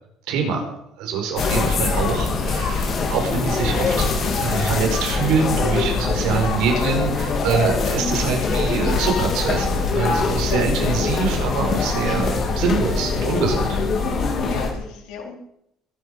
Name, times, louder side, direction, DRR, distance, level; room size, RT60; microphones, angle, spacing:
voice 1, 0.3-0.6 1.0-4.1 4.3-13.7, right 5 dB, 75° right, 3 dB, 5.0 m, -24 dB
sound 1, 1.4-14.7, left 4 dB, 40° left, 3.0 m, -23 dB
voice 2, 6.4-7.1 7.5-7.7 10.8-11.0 12.6-12.8 14.5-15.4, left 6 dB, 85° left, 2 dB, 4.1 m, -35 dB
22.0 x 10.5 x 5.5 m, 0.79 s
cardioid pair, 150°, 0 cm